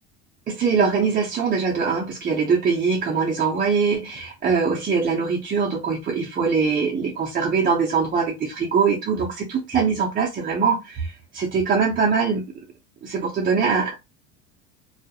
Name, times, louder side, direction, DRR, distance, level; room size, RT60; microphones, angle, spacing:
voice 1, 0.5-12.5 13.0-13.9, right 5 dB, 25° right, 0.5 m, -22 dB
2.3 x 2.0 x 2.7 m
supercardioid pair, 115°, 32 cm